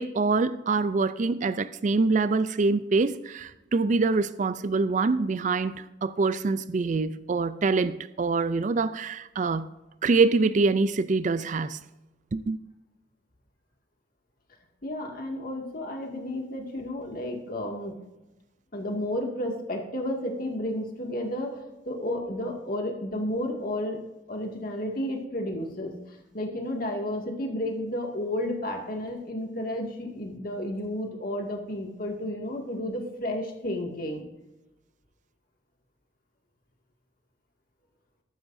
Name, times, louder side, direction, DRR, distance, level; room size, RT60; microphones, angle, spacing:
voice 1, 0.0-5.7 6.0-9.7 10.0-11.8 12.3-12.6, right 3 dB, 40° right, 0.4 m, -25 dB
voice 2, 14.8-17.9 18.7-24.0 24.3-34.3, left 1 dB, 50° left, 2.2 m, -32 dB
14.0 x 12.5 x 2.7 m
head